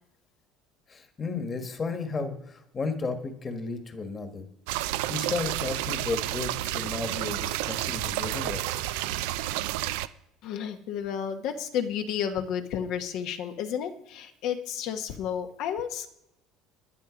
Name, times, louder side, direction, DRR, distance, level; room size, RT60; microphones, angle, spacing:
voice 1, 0.9-4.5 5.1-8.8, left 4 dB, 20° left, 8 dB, 1.5 m, -33 dB
sound 1, 4.7-10.1, right 15 dB, 85° right, 0.5 m, -30 dB
voice 2, 10.4-16.1, left 8 dB, 60° left, 6 dB, 1.1 m, -32 dB
11.5 x 10.5 x 5.1 m, 0.80 s
cardioid pair, 150°, 0 cm